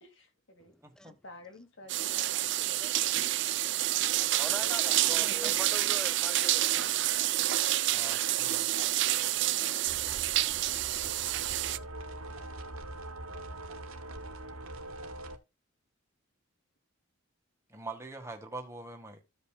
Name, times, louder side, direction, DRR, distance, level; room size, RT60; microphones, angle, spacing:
voice 1, 0.0-0.7 1.1-3.0 5.6-6.3 8.7-10.0, left 2 dB, 60° left, 2.1 m, -53 dB
voice 2, 0.8-1.1 5.2-5.5 7.9-8.7 17.7-19.2, right 2 dB, 15° right, 1.6 m, -44 dB
sound 1, 1.9-11.8, right 14 dB, 55° right, 0.4 m, -28 dB
voice 3, 2.6-6.6 6.9-7.5 7.8-8.0 9.5-10.0, equal, 5° left, 0.5 m, -45 dB
sound 2, 9.9-15.4, right 1 dB, 80° right, 1.4 m, -43 dB
15.0 x 5.4 x 2.3 m
head